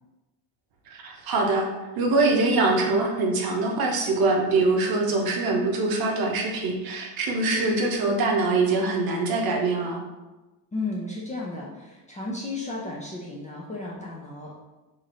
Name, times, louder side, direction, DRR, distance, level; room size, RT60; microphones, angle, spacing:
voice 1, 0.9-1.7 2.0-10.0, right 3 dB, 45° right, 1 dB, 0.9 m, -23 dB
voice 2, 10.7-14.6, left 2 dB, 15° left, -4 dB, 0.5 m, -34 dB
3.1 x 2.8 x 3.8 m, 1.1 s
supercardioid pair, 105°, 49 cm